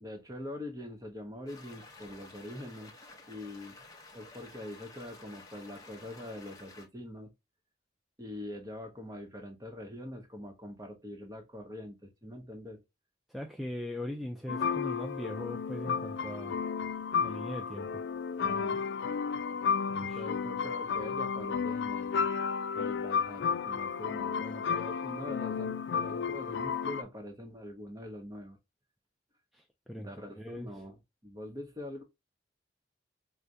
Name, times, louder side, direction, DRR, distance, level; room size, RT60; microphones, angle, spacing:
voice 1, 0.0-2.9 3.3-3.8 4.1-7.3 8.2-12.8 18.4-18.8 20.0-22.3 22.7-28.6 30.0-32.0, left 1 dB, 20° right, 0.9 m, -44 dB
sound 1, 1.5-6.9, left 2 dB, 20° left, 0.8 m, -52 dB
voice 2, 13.3-16.6 17.2-18.1 19.9-20.3 29.5-30.1 30.4-30.7, left 1 dB, ahead, 0.3 m, -40 dB
sound 2, 14.5-27.0, left 6 dB, 70° left, 0.4 m, -32 dB
4.8 x 2.2 x 2.6 m
head